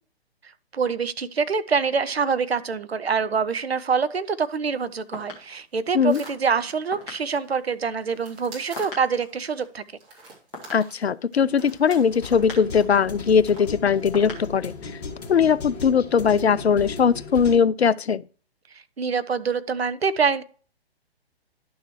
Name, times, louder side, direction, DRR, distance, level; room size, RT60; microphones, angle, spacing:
voice 1, 0.7-9.8 19.0-20.4, right 5 dB, 75° right, 0.8 m, -25 dB
sound 1, 4.7-15.4, left 2 dB, 5° left, 0.4 m, -45 dB
sound 2, 6.1-7.5 7.8-9.7 10.0-12.5 12.8-13.0 13.3-13.6 13.9-14.0, right 2 dB, 25° right, 3.5 m, -46 dB
voice 2, 10.7-14.7 15.3-18.2, left 6 dB, 80° left, 0.5 m, -20 dB
sound 3, 11.4-17.5, left 4 dB, 40° left, 1.8 m, -37 dB
11.0 x 6.3 x 3.1 m
figure-of-eight pair, 125°, 32 cm